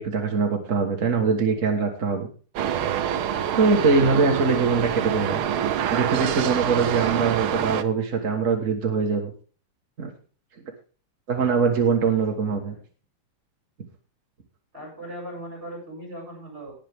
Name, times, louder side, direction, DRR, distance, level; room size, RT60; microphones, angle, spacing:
voice 1, 0.0-2.3 3.6-5.5 5.9-9.3 10.0-10.1 11.3-12.7, right 5 dB, 40° right, 2 dB, 1.1 m, -22 dB
sound 1, 2.6-7.8, right 9 dB, 80° right, 1.2 m, -26 dB
voice 2, 12.0-12.8 14.7-16.8, right 1 dB, 20° right, 1 dB, 7.4 m, -40 dB
19.0 x 7.4 x 3.6 m, 0.38 s
omnidirectional pair, 3.6 m